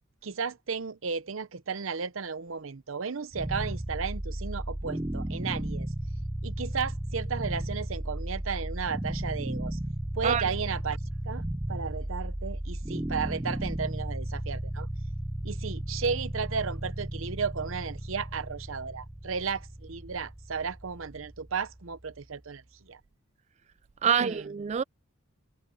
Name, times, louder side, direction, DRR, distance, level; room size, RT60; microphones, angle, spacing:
voice 1, 0.2-5.9 6.4-9.8 10.2-11.0 11.3-11.4 11.7-14.9 15.4-23.0 24.0-24.5, right 5 dB, 70° right, 0.8 m, -34 dB
sound 1, 3.3-22.4, right 1 dB, 15° right, 0.7 m, -35 dB
voice 2, 24.0-24.8, right 7 dB, 35° right, 0.3 m, -26 dB
head